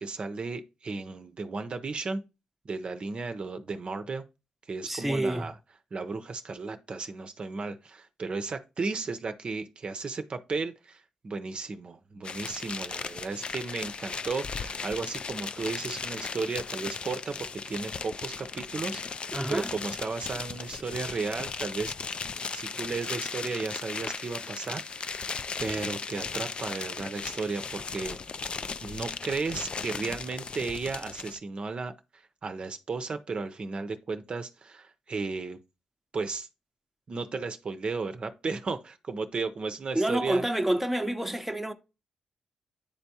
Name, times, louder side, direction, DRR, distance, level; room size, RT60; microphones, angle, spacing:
voice 1, 0.0-2.2 2.7-4.2 4.7-5.5 5.9-21.9 22.5-25.3 25.6-28.2 28.8-31.9 32.4-35.6 36.1-36.5 37.1-40.4, right 4 dB, 45° right, 0.6 m, -34 dB
voice 2, 4.8-5.5 19.3-19.7 39.9-41.7, right 1 dB, 5° right, 0.7 m, -28 dB
sound 1, 12.2-31.4, left 5 dB, 45° left, 0.3 m, -37 dB
10.0 x 3.4 x 2.8 m
cardioid pair, 60°, 2 cm